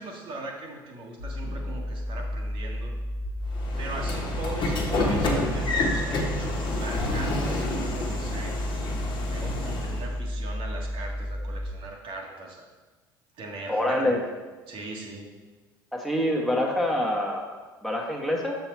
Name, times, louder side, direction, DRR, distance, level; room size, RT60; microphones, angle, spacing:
voice 1, 0.0-2.9 3.8-8.6 9.3-12.7 13.4-14.1 14.7-15.3, right 2 dB, 50° right, 0 dB, 1.4 m, -39 dB
sound 1, 1.2-11.7, left 1 dB, 80° right, 1.9 m, -32 dB
Train / Sliding door, 3.5-10.1, left 2 dB, 45° left, 1.4 m, -29 dB
voice 2, 13.7-14.2 15.9-18.6, left 1 dB, ahead, 0 dB, 1.3 m, -26 dB
6.9 x 5.7 x 4.4 m, 1.3 s
figure-of-eight pair, 60°, 12 cm